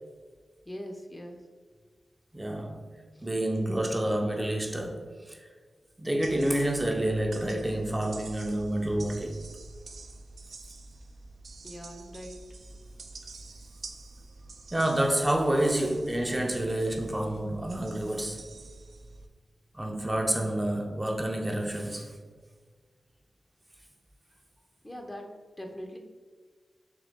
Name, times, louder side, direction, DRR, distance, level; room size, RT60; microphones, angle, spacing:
voice 1, 0.6-1.4 3.1-3.3 11.6-12.4 24.8-26.0, equal, 25° left, 0.7 m, -42 dB
voice 2, 2.3-2.9 3.2-5.4 6.0-9.4 14.7-18.5 19.7-22.2, right 1 dB, 20° right, 0.5 m, -28 dB
sound 1, 6.2-19.3, right 3 dB, 75° right, 0.4 m, -47 dB
3.8 x 3.0 x 3.6 m
cardioid pair, 45°, 0 cm